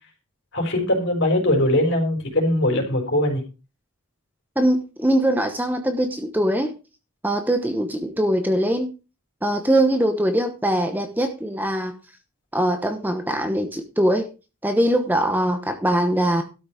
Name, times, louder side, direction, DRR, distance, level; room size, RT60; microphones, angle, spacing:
voice 1, 0.5-3.4, left 1 dB, 55° left, 3 dB, 4.4 m, -21 dB
voice 2, 4.6-6.7 7.2-8.9 9.4-11.9 12.5-14.3 14.6-16.4, right 1 dB, 10° right, 6 dB, 1.0 m, -22 dB
12.5 x 6.3 x 5.0 m, 0.31 s
head